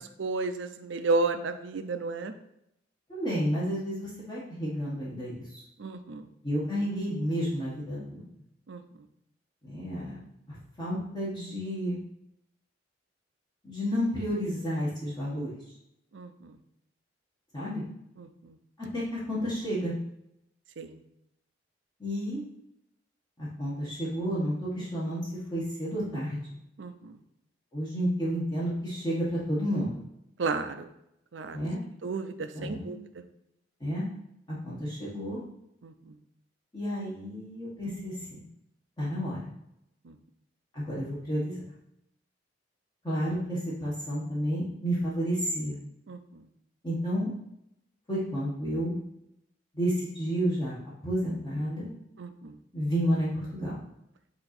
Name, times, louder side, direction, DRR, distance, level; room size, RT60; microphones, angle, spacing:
voice 1, 0.2-2.3 5.8-6.3 8.7-8.8 16.1-16.6 18.2-18.6 20.8-21.0 26.8-27.2 30.4-30.9 31.3-31.6 32.0-33.2 35.8-36.2 40.0-40.2 46.1-46.5 52.2-52.6, right 3 dB, 70° right, 8 dB, 0.6 m, -33 dB
voice 2, 3.1-5.6 6.4-8.2 9.6-10.2 10.5-12.0 13.6-15.6 17.5-17.8 18.8-20.0 22.0-22.4 23.4-25.2 25.5-26.4 27.7-30.0 31.5-31.8 32.5-32.9 33.8-34.1 34.5-35.4 36.7-38.5 39.0-39.4 40.7-41.6 43.0-45.8 46.8-47.3 48.1-49.0 49.7-51.9 52.7-53.7, equal, 20° left, -8 dB, 1.5 m, -31 dB
7.8 x 2.9 x 4.4 m, 0.80 s
head